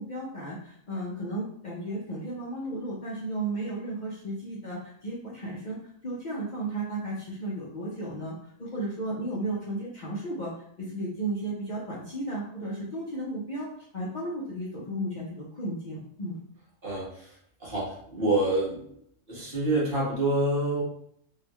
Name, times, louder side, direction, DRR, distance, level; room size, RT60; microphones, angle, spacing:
voice 1, 0.0-10.5 10.8-16.4, right 1 dB, 45° left, -6 dB, 0.7 m, -34 dB
voice 2, 16.8-18.8 19.3-20.8, right 2 dB, 45° right, -6 dB, 1.4 m, -27 dB
3.4 x 2.7 x 3.0 m, 0.67 s
omnidirectional pair, 1.4 m